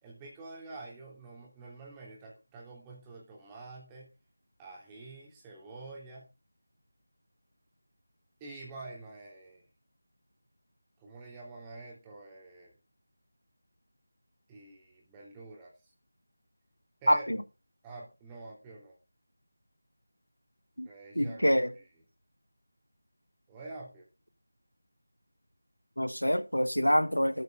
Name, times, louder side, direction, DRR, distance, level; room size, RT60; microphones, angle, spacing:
voice 1, 0.0-4.1 4.6-6.3 8.4-9.6 11.0-12.8 14.5-15.9 17.0-17.3 17.8-19.0 20.8-21.9 23.5-24.1, right 3 dB, 10° right, 3.2 m, -47 dB
voice 2, 17.1-17.4 20.8-20.9 21.1-21.7 26.0-27.4, equal, 85° left, 1.2 m, -26 dB
13.5 x 6.6 x 5.4 m
figure-of-eight pair, 165°, 0 cm